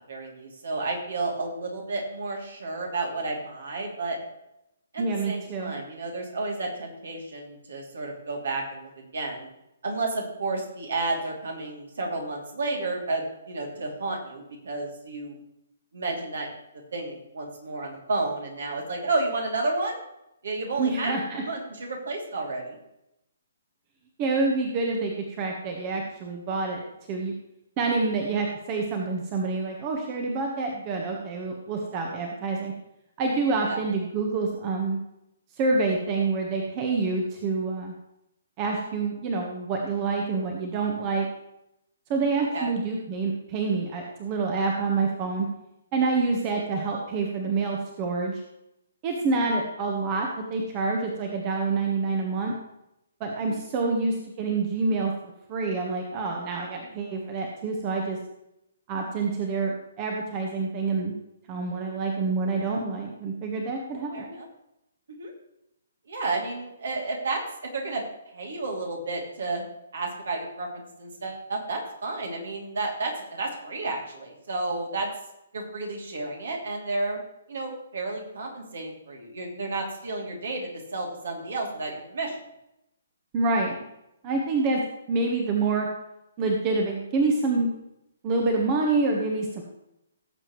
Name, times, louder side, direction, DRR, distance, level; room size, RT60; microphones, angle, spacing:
voice 1, 0.1-4.2 4.9-9.5 9.8-15.4 15.9-16.5 16.9-20.0 20.4-22.8 33.7-33.8 42.5-42.7 53.5-53.6 63.9-64.5 65.2-65.3 66.1-67.4 67.7-68.0 68.3-69.6 69.9-75.1 75.5-77.2 77.5-82.4, right 3 dB, 60° right, 0 dB, 3.0 m, -31 dB
voice 2, 5.0-5.8 20.8-21.4 24.2-26.8 27.1-27.3 27.8-32.7 33.2-35.0 35.6-37.9 38.6-41.3 42.1-45.5 45.9-48.4 49.0-52.5 53.2-58.2 58.9-61.1 61.5-64.2 83.3-83.8 84.2-84.8 85.1-85.9 86.4-87.7 88.2-89.6, right 3 dB, 30° right, 1 dB, 1.4 m, -27 dB
17.5 x 7.7 x 3.2 m, 0.85 s
figure-of-eight pair, 130°, 0 cm